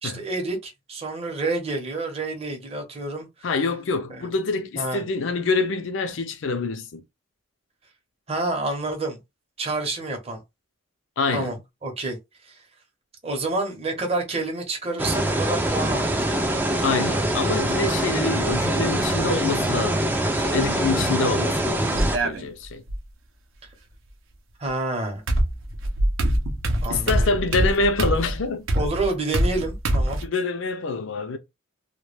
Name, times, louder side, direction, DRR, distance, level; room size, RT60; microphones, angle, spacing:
voice 1, 0.0-3.3 4.1-4.2 4.8-5.0 8.3-9.2 9.6-10.4 11.3-11.5 11.8-12.2 12.4-12.6 13.2-16.7 23.6-23.7 24.6-25.2 26.8-27.1 28.7-30.2, right 2 dB, 30° right, 0.7 m, -28 dB
voice 2, 3.4-7.0 11.2-11.5 16.8-22.8 26.9-28.7 30.2-31.4, left 3 dB, 65° left, 0.4 m, -26 dB
sound 1, 15.0-22.2, right 1 dB, 10° right, 0.3 m, -24 dB
sound 2, 18.5-19.1 20.4-21.0 21.9-23.0 24.7-24.8 25.3-30.3, right 1 dB, 70° right, 0.6 m, -25 dB
2.2 x 2.1 x 3.1 m
head